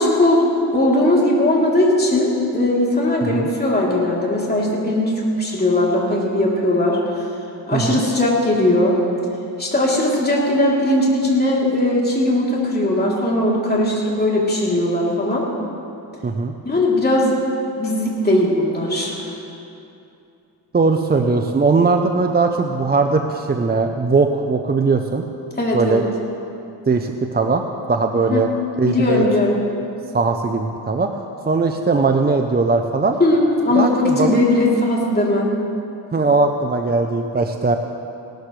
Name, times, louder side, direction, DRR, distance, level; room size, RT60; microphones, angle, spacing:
voice 1, 0.0-7.0 7.7-8.9 9.6-15.5 16.7-17.4 17.8-19.2 25.6-26.0 28.1-28.4 28.8-29.6 33.2-35.6, left 1 dB, 20° left, -4 dB, 3.4 m, -18 dB
voice 2, 7.7-8.0 16.2-16.5 20.7-25.2 25.7-26.1 26.9-27.6 27.9-28.5 28.8-29.2 30.1-33.2 33.7-34.4 36.1-37.7, right 4 dB, 20° right, 5 dB, 0.7 m, -19 dB
18.0 x 13.0 x 3.3 m, 2.7 s
cardioid pair, 80°, 43 cm